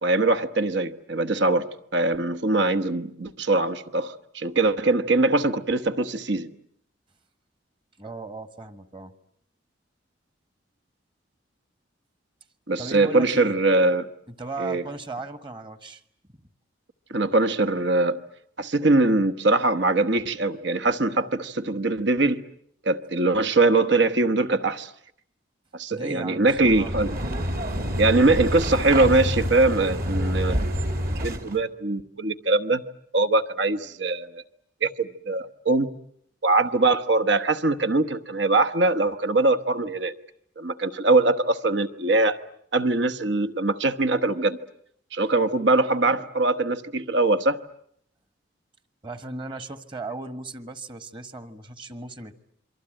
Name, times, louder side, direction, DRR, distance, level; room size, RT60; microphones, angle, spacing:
voice 1, 0.0-6.5 12.7-14.1 14.6-14.8 17.1-18.2 18.6-22.4 22.8-24.9 25.7-27.2 28.0-30.7 31.1-32.8 33.1-34.4 34.8-35.9 36.4-40.1 40.6-42.4 42.7-44.6 45.1-47.6, right 2 dB, 65° right, 1.2 m, -22 dB
voice 2, 8.0-9.1 12.8-13.6 14.3-16.0 25.9-27.0 49.0-52.3, right 2 dB, 25° right, 1.4 m, -36 dB
sound 1, 26.5-31.6, equal, 50° right, 2.7 m, -27 dB
28.0 x 24.0 x 8.9 m
head